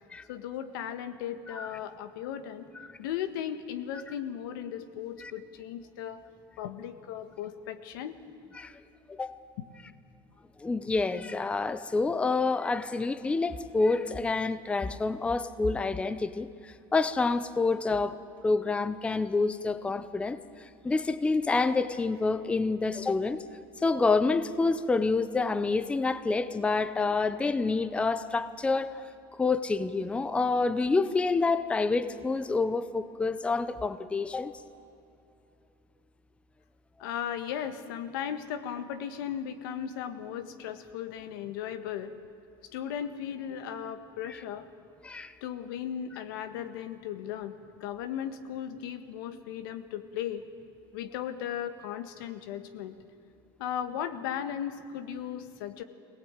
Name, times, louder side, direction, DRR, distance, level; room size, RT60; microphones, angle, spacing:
voice 1, 0.3-2.7 3.0-6.2 6.6-8.2 37.0-42.2 42.7-44.7 45.4-50.5 50.9-53.0 53.6-55.8, left 9 dB, 90° left, 9 dB, 1.6 m, -36 dB
voice 2, 9.1-9.4 10.6-23.4 23.8-29.1 29.4-34.6 44.3-44.4 45.0-45.3, left 3 dB, 10° left, 13 dB, 0.7 m, -28 dB
22.0 x 18.5 x 9.1 m, 2.8 s
cardioid pair, 145°, 11 cm